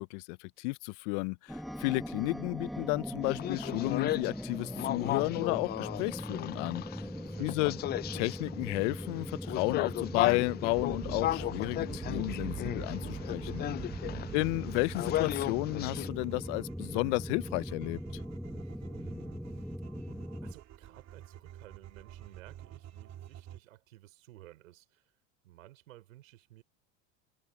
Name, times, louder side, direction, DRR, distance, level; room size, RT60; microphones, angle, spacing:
voice 1, 0.0-6.8 7.4-7.7 8.1-13.7 14.3-18.0, left 27 dB, 65° left, 0.8 m, -32 dB
sound 1, 1.5-20.5, equal, ahead, 1.4 m, -40 dB
sound 2, 3.2-16.1, left 14 dB, 25° left, 0.3 m, -36 dB
voice 2, 7.2-7.8 14.1-14.4 18.6-19.7 20.4-25.1 25.4-26.6, right 15 dB, 80° right, 5.2 m, -55 dB
sound 3, 10.7-23.6, right 11 dB, 40° right, 2.7 m, -47 dB
hypercardioid pair, 95°, 39 cm